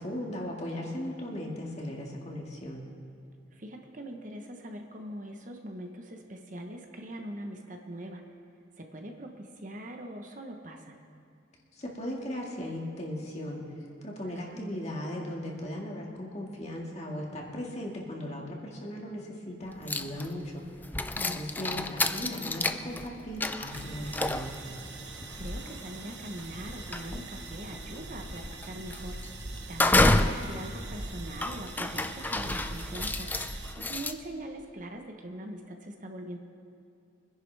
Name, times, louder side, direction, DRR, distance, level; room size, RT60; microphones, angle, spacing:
voice 1, 0.0-2.8 11.8-13.6 14.0-20.6 21.1-24.7, left 1 dB, 35° left, -1 dB, 2.0 m, -37 dB
voice 2, 3.5-8.2 8.8-11.0 14.3-14.6 21.0-21.4 25.4-29.2 29.7-33.3 33.5-36.4, right 1 dB, 45° right, 3 dB, 1.1 m, -42 dB
sound 1, 19.9-20.5 20.8-34.1, left 2 dB, 10° left, 0.3 m, -30 dB
sound 2, 23.7-33.7, right 2 dB, 70° right, 1.2 m, -42 dB
24.0 x 10.5 x 3.4 m, 2.5 s
head